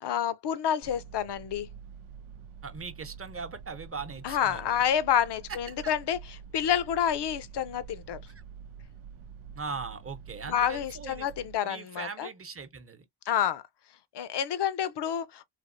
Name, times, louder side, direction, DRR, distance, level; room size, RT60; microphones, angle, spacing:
voice 1, 0.0-1.7 4.2-6.2 6.5-8.2 10.5-12.3 13.3-13.6 14.1-15.4, left 9 dB, 60° left, 0.7 m, -28 dB
sound 1, 0.8-11.6, right 7 dB, 85° right, 0.7 m, -47 dB
voice 2, 2.6-4.8 5.7-5.9 8.3-8.4 9.5-11.3 11.6-13.1, right 4 dB, 30° right, 0.9 m, -40 dB
3.4 x 2.6 x 2.6 m
supercardioid pair, 45°, 47 cm